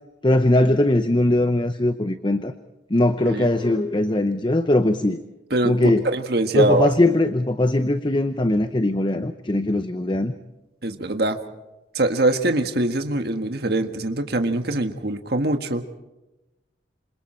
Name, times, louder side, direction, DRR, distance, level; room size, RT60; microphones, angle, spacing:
voice 1, 0.2-2.5 2.9-5.2 5.6-6.0 6.5-10.3, left 1 dB, 25° left, 10 dB, 0.7 m, -20 dB
voice 2, 5.5-6.9 10.8-11.4 11.9-16.0, right 2 dB, 55° right, 7 dB, 1.6 m, -23 dB
27.5 x 26.5 x 4.4 m, 1.0 s
head